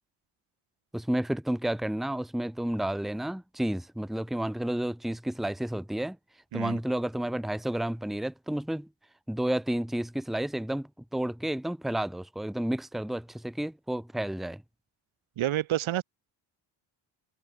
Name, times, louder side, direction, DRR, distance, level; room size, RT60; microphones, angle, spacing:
voice 1, 0.9-6.2 6.5-8.9 9.3-14.6, right 1 dB, ahead, 1.2 m, -31 dB
voice 2, 15.4-16.0, right 13 dB, 75° right, 7.4 m, -28 dB
cardioid pair, 160°, 48 cm